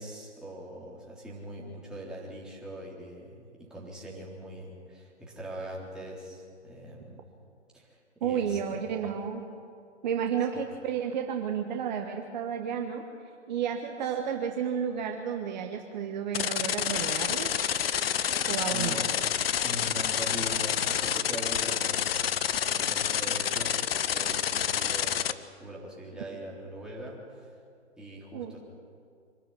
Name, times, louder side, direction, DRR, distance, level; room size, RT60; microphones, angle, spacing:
voice 1, 0.0-7.3 7.7-9.1 18.7-19.1 19.6-22.3 22.6-25.3 25.6-27.6 28.0-28.7, right 1 dB, ahead, -5 dB, 3.7 m, -41 dB
voice 2, 8.2-9.5 10.0-13.0 13.5-17.5 18.5-19.0 28.3-28.5, right 8 dB, 40° right, 4 dB, 1.4 m, -31 dB
sound 1, 16.3-25.3, left 9 dB, 55° left, 0.9 m, -28 dB
24.5 x 12.5 x 9.9 m, 2.3 s
figure-of-eight pair, 130°, 35 cm